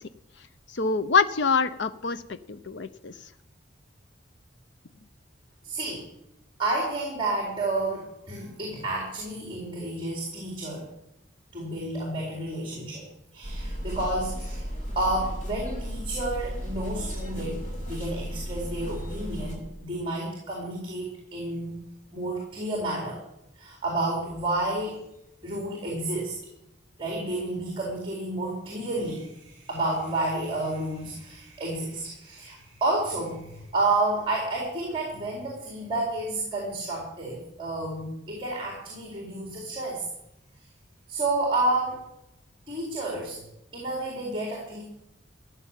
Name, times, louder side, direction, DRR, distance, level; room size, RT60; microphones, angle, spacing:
voice 1, 0.7-3.1, left 5 dB, 65° left, 11 dB, 0.6 m, -25 dB
voice 2, 5.6-6.1 6.6-10.9 11.5-13.1 13.3-14.6 15.0-21.8 22.1-23.2 23.6-25.0 25.4-26.4 27.0-40.0 41.1-42.0 42.7-43.4 43.7-44.8, right 2 dB, 25° right, -2 dB, 4.2 m, -30 dB
sound 1, 13.4-19.6, equal, 40° left, 6.0 m, -34 dB
15.0 x 10.5 x 7.3 m, 0.85 s
head